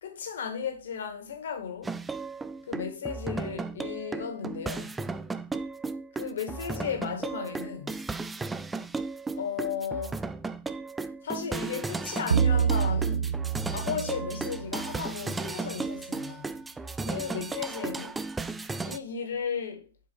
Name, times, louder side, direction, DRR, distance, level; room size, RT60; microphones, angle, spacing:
voice 1, 0.0-1.9 2.7-5.0 6.2-7.9 9.4-10.2 11.2-13.4 13.7-16.5 17.1-18.2 18.8-19.9, left 7 dB, 65° left, 1.9 m, -35 dB
sound 1, 1.8-19.0, right 3 dB, 10° right, 0.4 m, -35 dB
sound 2, 12.3-15.0, right 7 dB, 80° right, 0.5 m, -27 dB
7.5 x 4.8 x 4.6 m
figure-of-eight pair, 115°, 0 cm